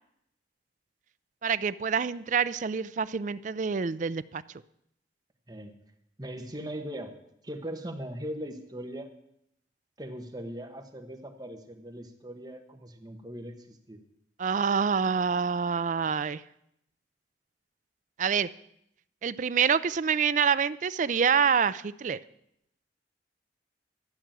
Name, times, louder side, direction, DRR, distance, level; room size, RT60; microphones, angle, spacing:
voice 1, 1.4-4.4 14.4-16.4 18.2-18.5 19.2-22.2, right 6 dB, 45° right, 15 dB, 0.4 m, -26 dB
voice 2, 6.2-7.1 7.4-9.1 10.0-14.0, equal, 20° right, 4 dB, 1.3 m, -39 dB
13.0 x 6.1 x 8.9 m, 0.76 s
head